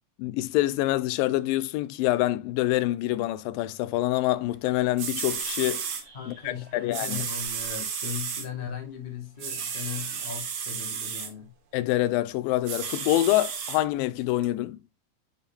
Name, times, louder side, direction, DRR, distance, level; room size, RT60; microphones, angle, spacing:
voice 1, 0.2-5.8 6.3-7.2 11.7-14.8, left 16 dB, 90° left, 2.3 m, -26 dB
sound 1, 4.7-4.8 5.0-6.0 6.9-8.5 9.4-11.3 12.6-13.8 14.4-14.5, right 7 dB, 60° right, 2.5 m, -33 dB
sound 2, 5.9-7.2 9.2-10.4, right 4 dB, 45° right, 2.8 m, -51 dB
voice 2, 6.1-11.5, left 7 dB, 50° left, 0.6 m, -38 dB
6.7 x 4.8 x 3.4 m
omnidirectional pair, 4.0 m